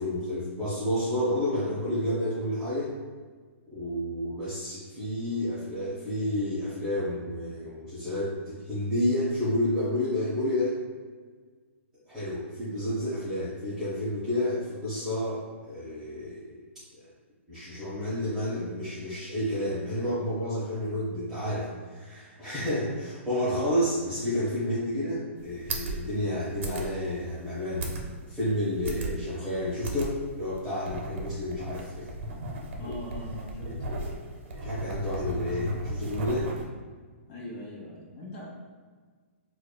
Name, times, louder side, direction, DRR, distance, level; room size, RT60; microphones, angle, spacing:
voice 1, 0.0-2.9 3.7-10.8 12.1-16.6 17.0-17.1 17.5-27.9 28.3-32.1 32.8-32.9 33.6-34.1 34.5-36.5, left 1 dB, 5° right, -12 dB, 0.7 m, -30 dB
sound 1, 25.4-36.6, right 1 dB, 60° right, 0.7 m, -36 dB
voice 2, 32.8-33.7 37.3-38.4, left 1 dB, 40° left, -5 dB, 1.2 m, -41 dB
4.6 x 2.3 x 2.2 m, 1.5 s
hypercardioid pair, 155°, 7 cm